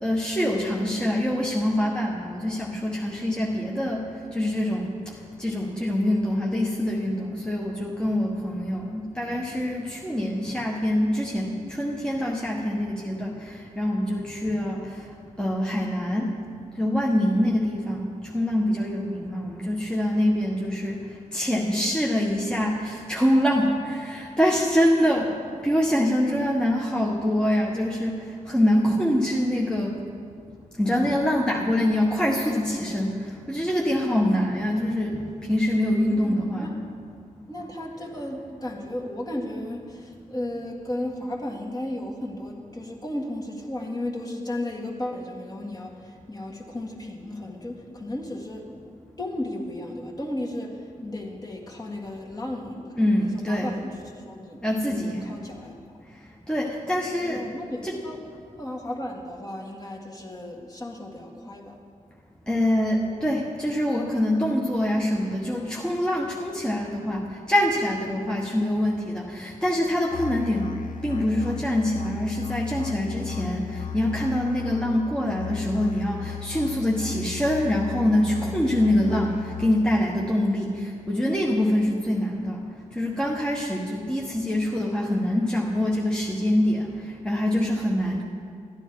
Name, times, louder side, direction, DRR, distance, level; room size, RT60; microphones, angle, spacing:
voice 1, 0.0-4.0 4.3-4.9 5.4-15.0 15.4-16.3 16.8-21.0 21.3-25.3 25.6-28.1 28.5-30.0 30.8-36.8 53.0-53.7 54.6-55.3 56.5-57.4 57.8-57.9 62.5-70.7 71.0-82.6 82.9-86.9 87.2-88.2, left 1 dB, 5° left, -3 dB, 1.2 m, -25 dB
voice 2, 35.9-36.7 37.5-48.7 49.2-55.8 57.1-58.2 58.6-61.8, left 1 dB, 25° left, -2 dB, 1.9 m, -34 dB
Musical instrument, 70.1-80.1, left 10 dB, 70° left, 0.7 m, -36 dB
13.0 x 9.7 x 4.7 m, 2.3 s
cardioid pair, 60°, 14 cm